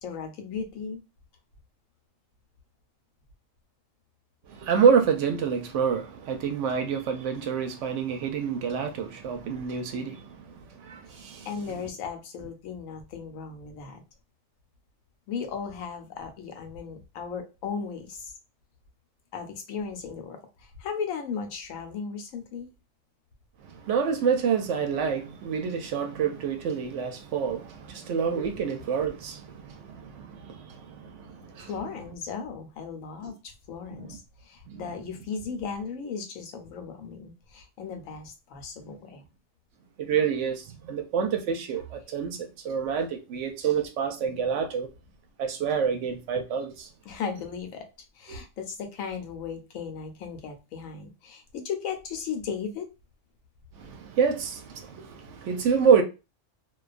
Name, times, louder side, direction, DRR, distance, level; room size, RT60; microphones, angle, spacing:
voice 1, 0.0-1.0 11.1-14.0 15.3-18.3 19.3-22.7 31.7-39.2 47.0-47.9 48.1-52.9, left 6 dB, 90° left, 1.1 m, -36 dB
voice 2, 4.5-11.5 23.6-31.7 33.2-33.3 33.9-34.2 34.7-34.8 40.0-44.9 45.4-46.9 48.3-48.4 53.8-56.0, right 6 dB, 70° right, 0.8 m, -27 dB
2.4 x 2.3 x 2.3 m
omnidirectional pair, 1.4 m